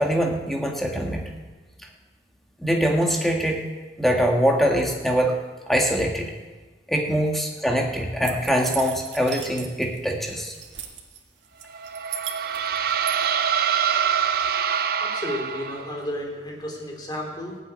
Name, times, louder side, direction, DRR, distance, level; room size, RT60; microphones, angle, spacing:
voice 1, 0.0-1.3 2.6-3.7 4.0-5.4 5.7-6.3 6.9-10.5, equal, ahead, 0 dB, 1.7 m, -23 dB
sound 1, 8.2-10.0 10.3-11.2 11.6-13.1, right 9 dB, 90° right, 1.9 m, -36 dB
sound 2, 11.7-16.0, right 8 dB, 55° right, 0.7 m, -25 dB
voice 2, 14.7-17.6, left 1 dB, 25° left, 0 dB, 3.4 m, -33 dB
15.5 x 8.0 x 9.5 m, 1.3 s
head